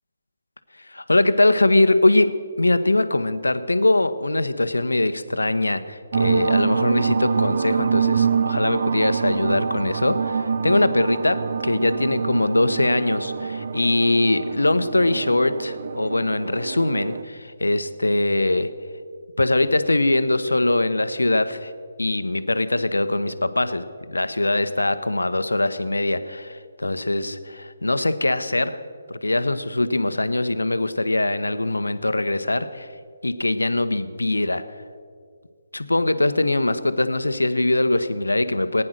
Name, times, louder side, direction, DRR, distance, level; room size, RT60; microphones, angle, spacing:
voice 1, 0.8-18.7 19.4-21.7 22.0-28.8 29.1-32.9 33.2-34.6 35.7-38.8, left 2 dB, 80° left, 11 dB, 0.9 m, -22 dB
sound 1, 6.1-17.2, right 6 dB, 50° right, 0.5 m, -25 dB
19.5 x 9.8 x 6.5 m, 2.1 s
figure-of-eight pair, 140°, 0 cm